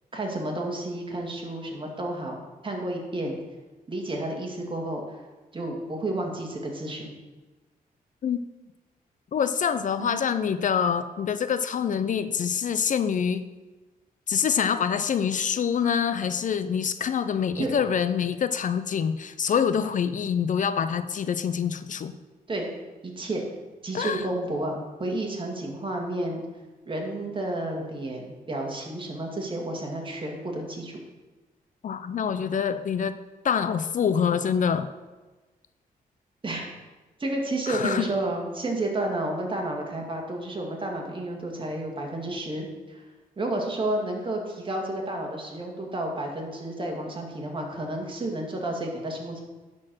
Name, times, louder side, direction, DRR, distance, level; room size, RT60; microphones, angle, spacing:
voice 1, 0.1-3.4 3.9-5.0 5.5-7.1 10.0-10.2 17.6-17.7 22.5-22.7 23.0-23.4 23.8-26.4 26.9-30.9 36.4-36.7 37.2-43.0 43.4-49.4, right 1 dB, 35° right, 0 dB, 2.1 m, -31 dB
voice 2, 9.3-13.4 14.3-22.1 23.9-24.3 31.8-33.2 33.4-34.9 37.7-38.1, left 7 dB, 55° left, 11 dB, 0.5 m, -26 dB
10.5 x 4.4 x 6.1 m, 1.2 s
cardioid pair, 95°, 15 cm